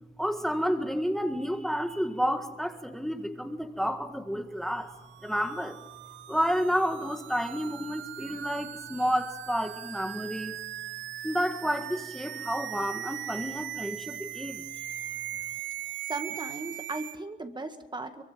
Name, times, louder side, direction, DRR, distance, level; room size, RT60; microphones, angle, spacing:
voice 1, 0.2-4.9 5.2-5.8 6.3-10.6 11.2-14.6, equal, ahead, 6 dB, 1.7 m, -30 dB
sound 1, 4.9-17.2, right 12 dB, 70° right, 0.8 m, -40 dB
voice 2, 16.0-18.2, right 2 dB, 20° right, 8 dB, 1.9 m, -37 dB
23.5 x 22.5 x 7.5 m, 1.1 s
cardioid pair, 90°, 20 cm